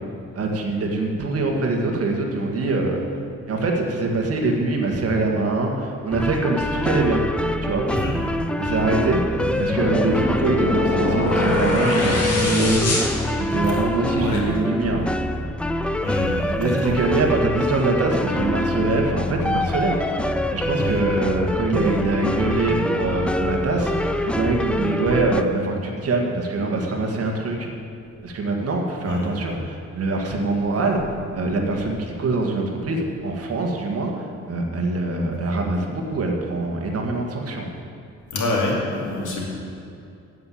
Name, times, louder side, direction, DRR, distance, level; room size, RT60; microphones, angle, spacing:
voice 1, 0.3-3.0 3.5-7.2 7.6-7.8 8.6-15.1 16.0-16.2 16.6-20.0 20.5-27.7 28.2-31.0 31.3-37.7, right 2 dB, 55° right, 1 dB, 1.8 m, -24 dB
sound 1, 6.1-25.4, left 1 dB, 5° left, 0.4 m, -25 dB
sound 2, 9.3-13.9, left 1 dB, 55° left, 2.7 m, -24 dB
voice 2, 16.0-16.9 20.8-21.0 29.0-29.3 38.3-39.5, left 2 dB, 85° left, -2 dB, 2.8 m, -26 dB
9.3 x 8.6 x 7.7 m, 2.5 s
wide cardioid pair, 150°, 29 cm